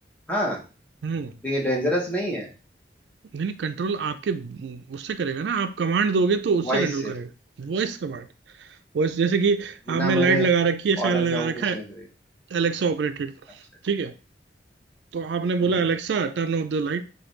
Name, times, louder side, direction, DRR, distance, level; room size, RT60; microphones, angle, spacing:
voice 1, 0.3-0.6 1.4-2.5 6.6-7.1 9.9-10.5 11.0-12.0, equal, 10° left, 1.0 m, -27 dB
voice 2, 1.0-1.3 3.3-7.3 7.6-8.3 8.9-11.8 12.5-13.3 13.8-14.1 15.1-17.0, right 5 dB, 85° right, 0.4 m, -24 dB
4.8 x 2.3 x 3.1 m
head